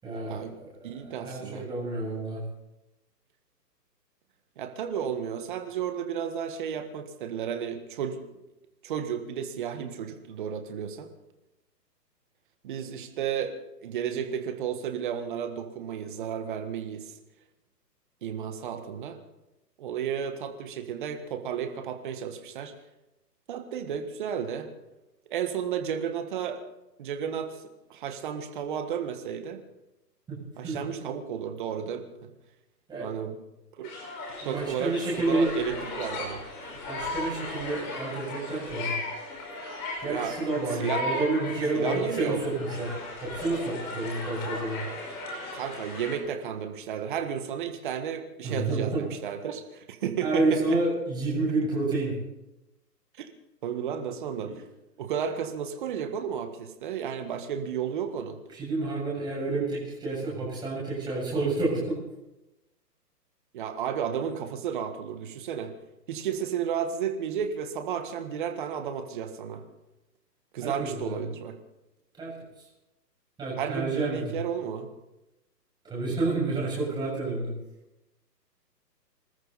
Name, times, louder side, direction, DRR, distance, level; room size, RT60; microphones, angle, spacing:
voice 1, 0.0-2.4 30.3-30.4 30.6-30.8 32.9-33.1 34.4-35.6 36.9-38.9 40.0-42.9 43.2-44.8 48.4-49.0 50.2-52.2 54.4-54.5 58.5-62.0 70.6-71.2 72.2-72.3 72.6-72.7 73.4-74.4 75.8-77.5, right 2 dB, 10° right, -5 dB, 7.4 m, -29 dB
voice 2, 0.8-1.7 4.6-8.2 8.8-11.1 12.6-13.6 13.8-17.1 18.2-19.2 19.8-22.7 23.5-24.7 25.3-26.6 27.0-27.6 27.9-29.6 30.6-32.3 33.0-33.4 33.8-33.9 34.4-36.7 40.1-40.3 40.8-41.0 41.7-42.4 45.5-50.8 53.2-53.3 53.6-54.5 55.0-58.4 63.5-65.7 66.1-69.6 70.5-71.6 73.6-74.9, right 8 dB, 30° right, 7 dB, 1.6 m, -33 dB
sound 1, 33.8-46.2, left 2 dB, 30° left, 5.4 m, -36 dB
26.0 x 13.5 x 4.2 m, 0.96 s
hypercardioid pair, 155°, 50 cm